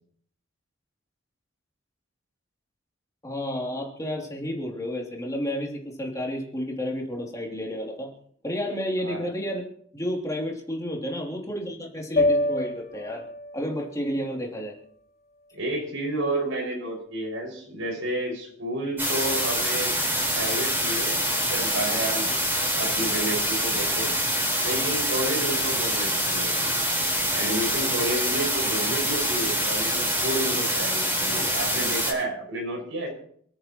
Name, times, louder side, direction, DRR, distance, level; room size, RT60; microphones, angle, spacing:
voice 1, 3.2-8.1 8.4-9.6 9.9-13.2 13.5-14.7, equal, 15° left, -1 dB, 2.9 m, -31 dB
sound 1, 12.2-16.4, left 2 dB, 45° left, 5.0 m, -29 dB
voice 2, 15.5-20.0 20.3-22.4 22.7-24.1 24.6-26.6 27.3-33.1, right 1 dB, 85° right, 1 dB, 5.9 m, -31 dB
sound 2, 19.0-32.1, equal, 10° right, 4.5 m, -25 dB
28.0 x 10.0 x 3.1 m, 0.63 s
head